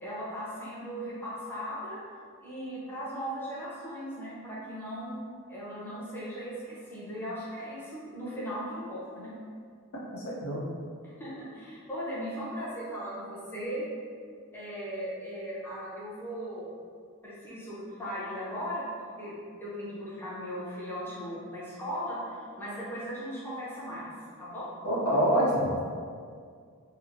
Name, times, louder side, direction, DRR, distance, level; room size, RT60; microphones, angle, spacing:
voice 1, 0.0-2.0 2.4-5.2 5.5-9.3 11.0-13.9 14.5-16.6 17.2-24.1 24.4-24.7, equal, 10° left, -8 dB, 0.6 m, -38 dB
voice 2, 10.1-10.7 24.8-25.8, equal, 85° left, -6 dB, 0.7 m, -26 dB
2.9 x 2.0 x 2.6 m, 2.1 s
head